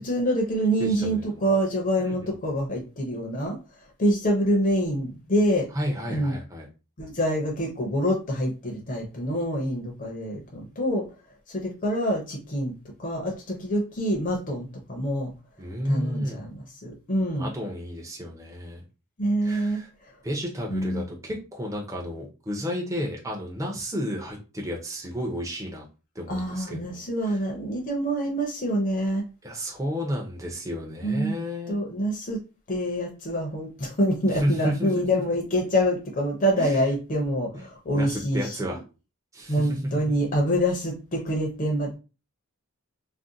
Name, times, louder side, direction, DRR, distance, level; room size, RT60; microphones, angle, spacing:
voice 1, 0.0-3.6 4.0-5.7 6.1-6.4 7.0-11.0 11.5-12.7 13.0-15.3 15.9-17.5 19.2-20.1 20.7-21.1 26.3-29.2 31.0-31.3 31.7-32.4 32.7-38.6 39.5-42.0, equal, 35° left, 1 dB, 0.6 m, -26 dB
voice 2, 0.8-1.4 2.0-2.3 5.7-6.7 15.6-16.4 17.4-18.8 19.4-19.9 20.2-25.9 26.1-27.4 29.4-31.8 34.3-35.3 36.6-36.9 37.5-37.6 37.9-38.8 39.3-39.8, equal, 15° right, -1 dB, 0.5 m, -32 dB
2.5 x 2.1 x 3.7 m, 0.32 s
head